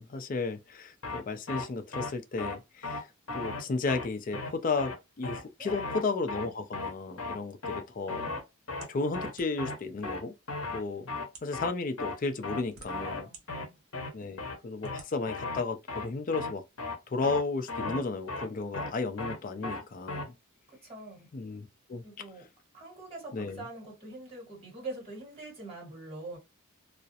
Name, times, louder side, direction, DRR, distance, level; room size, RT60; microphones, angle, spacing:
voice 1, 0.0-3.1 3.3-4.9 5.2-8.2 8.9-10.3 10.7-11.1 11.4-13.3 14.1-16.6 17.1-20.3 21.3-22.0 23.3-23.6, left 3 dB, 40° left, 0.4 m, -33 dB
sound 1, 1.0-1.2 1.5-1.6 1.9-2.1 2.4-2.5 2.8-3.0 3.3-3.6 3.9-4.0 4.3-4.5 4.8-4.9 5.2-5.4 5.7-6.0 6.3-6.4 6.7-6.9 7.2-7.4 7.6-7.8 8.1-8.4 8.7-8.9 9.1-9.3 9.6-9.8 10.0-10.2 10.5-10.8 11.1-11.3 11.5-11.7 12.0-12.1 12.4-12.6 12.9-13.2 13.5-13.6 13.9-14.1 14.4-14.5 14.8-15.0 15.3-15.6 15.9-16.1 16.3-16.5 16.8-16.9 17.2-17.4 17.7-18.0 18.3-18.4 18.7-18.9 19.2-19.4 19.6-19.8 20.1-20.2, left 3 dB, 65° left, 0.7 m, -36 dB
voice 2, 5.6-5.9 12.9-13.8 20.7-21.3 22.0-22.5 22.7-26.4, right 2 dB, 25° right, 1.4 m, -44 dB
sound 2, 8.8-9.8 10.6-10.7 11.2-11.6 12.4-13.4 13.9-14.0 14.8-15.1, right 4 dB, 85° right, 0.8 m, -51 dB
2.4 x 2.0 x 2.7 m
head